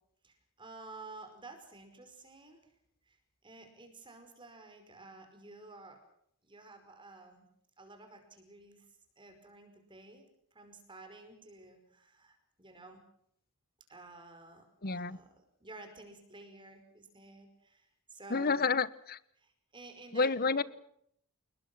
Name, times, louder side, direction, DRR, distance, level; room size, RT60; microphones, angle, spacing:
voice 1, 0.2-2.6 3.1-3.2 3.4-6.0 6.4-7.5 7.8-8.9 9.2-10.3 10.5-13.0 13.9-15.3 15.6-18.7 19.4-20.6, right 2 dB, 20° right, 6 dB, 5.3 m, -52 dB
voice 2, 14.8-15.2 18.3-19.2 20.1-20.6, left 4 dB, 45° left, 18 dB, 1.1 m, -29 dB
29.5 x 21.0 x 6.2 m, 0.70 s
head